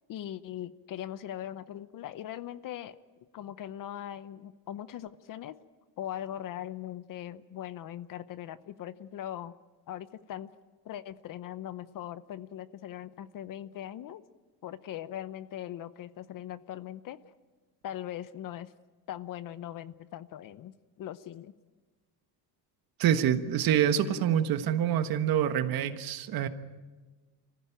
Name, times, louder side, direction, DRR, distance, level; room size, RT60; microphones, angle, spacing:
voice 1, 0.1-3.0 3.3-5.5 6.0-9.5 9.9-10.5 10.8-14.2 14.6-17.2 17.8-18.7 19.1-21.5, left 11 dB, 50° left, 15 dB, 0.8 m, -40 dB
voice 2, 23.0-26.5, right 9 dB, 55° right, 10 dB, 1.4 m, -26 dB
27.0 x 15.0 x 9.1 m, 1.3 s
cardioid pair, 150°, 43 cm